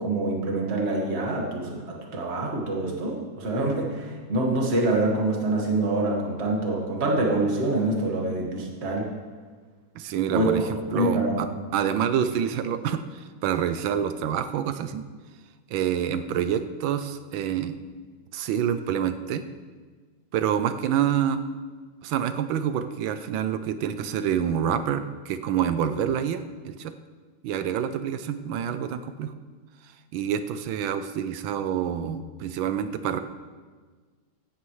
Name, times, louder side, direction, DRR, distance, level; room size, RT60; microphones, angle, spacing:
voice 1, 0.0-9.1 10.3-10.5 10.9-11.4, right 2 dB, 35° right, -1 dB, 1.9 m, -26 dB
voice 2, 9.9-11.5 11.7-15.0 15.7-17.8 18.3-19.4 20.3-21.4 22.0-26.9 27.4-29.3 30.1-33.2, right 9 dB, 85° right, 10 dB, 1.5 m, -27 dB
16.5 x 13.0 x 3.2 m, 1.5 s
omnidirectional pair, 2.1 m